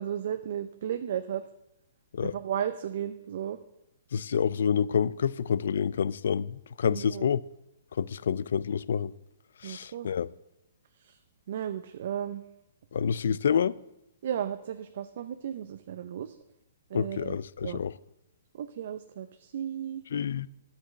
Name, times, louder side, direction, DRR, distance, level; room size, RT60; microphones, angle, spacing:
voice 1, 0.0-1.4 2.2-3.6 6.9-7.2 9.6-10.1 11.0-11.2 11.5-12.4 14.2-16.3 16.9-17.8 18.5-20.0, right 9 dB, 60° right, 0.6 m, -34 dB
voice 2, 4.1-7.4 8.0-9.1 9.6-10.3 12.9-13.8 16.9-17.9 20.1-20.5, left 7 dB, 70° left, 0.4 m, -28 dB
10.5 x 8.2 x 6.4 m
hypercardioid pair, 140°, 0 cm